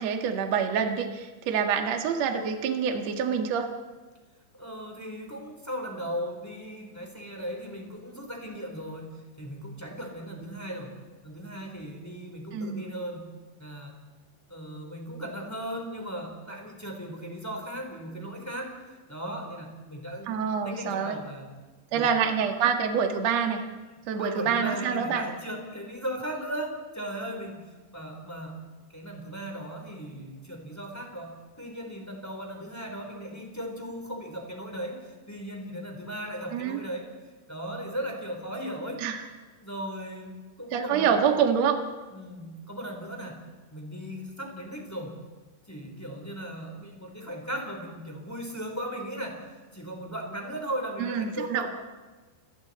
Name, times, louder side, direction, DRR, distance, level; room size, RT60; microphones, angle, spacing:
voice 1, 0.0-3.7 12.5-12.8 20.3-21.2 21.9-23.6 24.1-25.2 36.5-36.8 39.0-39.2 40.7-41.8 51.0-51.7, right 7 dB, 55° right, 4 dB, 1.9 m, -26 dB
voice 2, 4.5-11.0 11.2-13.3 13.6-13.9 14.5-18.7 19.1-21.5 21.9-22.3 24.2-28.6 28.9-37.1 37.5-39.0 39.6-40.3 40.6-41.4 42.1-43.4 43.7-45.1 45.7-49.4 49.7-51.7, equal, 5° left, 1 dB, 2.9 m, -37 dB
30.0 x 20.5 x 4.3 m, 1.3 s
omnidirectional pair, 5.5 m